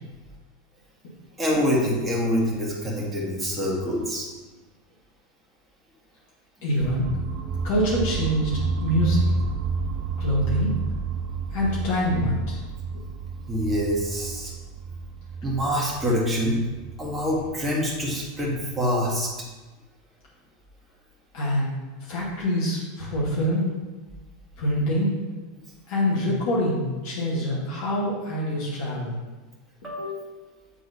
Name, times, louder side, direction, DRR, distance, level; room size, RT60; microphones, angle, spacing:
voice 1, 1.4-4.3 13.5-14.5 15.4-16.6 17.0-19.3 29.8-30.2, equal, 15° right, -5 dB, 1.9 m, -25 dB
voice 2, 6.6-7.1 7.6-8.5 8.8-9.3 10.2-10.7 11.5-12.6 21.3-21.7 22.0-23.7 24.6-25.1 25.9-29.2, equal, 55° left, -6 dB, 1.9 m, -25 dB
sound 1, 6.8-18.7, right 4 dB, 35° right, 0.6 m, -30 dB
8.2 x 3.8 x 4.2 m, 1.2 s
figure-of-eight pair, 85°, 0 cm